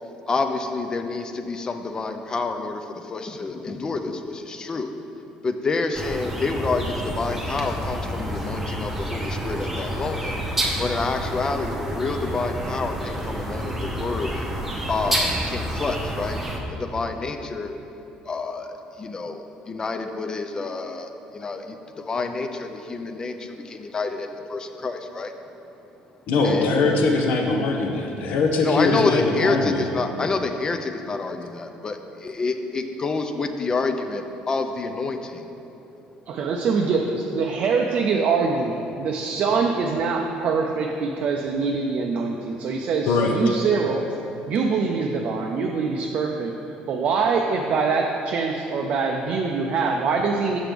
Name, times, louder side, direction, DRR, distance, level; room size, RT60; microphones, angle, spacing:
voice 1, 0.3-2.8 3.1-4.9 5.4-10.4 10.8-14.3 14.9-16.4 16.7-17.8 18.3-18.7 19.0-19.4 19.7-21.8 22.1-25.3 26.4-26.7 28.6-35.4, left 3 dB, 25° left, 7 dB, 0.4 m, -28 dB
sound 1, 5.9-16.6, right 1 dB, 10° right, 0.8 m, -29 dB
voice 2, 26.3-29.9 43.0-43.4, left 3 dB, 70° left, 2 dB, 0.7 m, -21 dB
voice 3, 36.3-44.1 44.5-46.5 46.9-50.6, right 4 dB, 55° right, 1 dB, 0.4 m, -24 dB
6.0 x 5.9 x 3.4 m, 2.9 s
cardioid pair, 105°, 3 cm